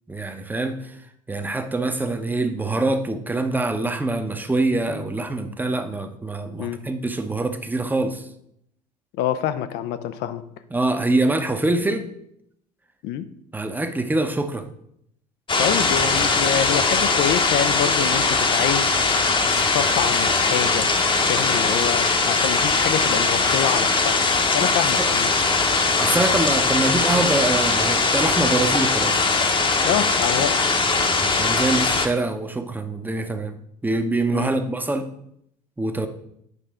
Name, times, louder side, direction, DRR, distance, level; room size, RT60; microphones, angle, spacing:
voice 1, 0.1-1.0 1.3-8.3 10.7-12.1 13.5-14.7 24.6-24.7 25.0-25.1 26.0-29.2 31.2-33.5 33.8-35.1 35.8-36.1, right 2 dB, 10° right, 7 dB, 0.9 m, -24 dB
voice 2, 9.1-10.4 13.0-13.3 15.6-24.2 24.5-25.3 29.8-30.6 34.3-34.5, left 10 dB, 60° left, 11 dB, 0.6 m, -26 dB
sound 1, 15.5-32.1, left 3 dB, 25° left, 1.0 m, -20 dB
8.1 x 5.4 x 3.6 m, 0.74 s
hypercardioid pair, 65°, 19 cm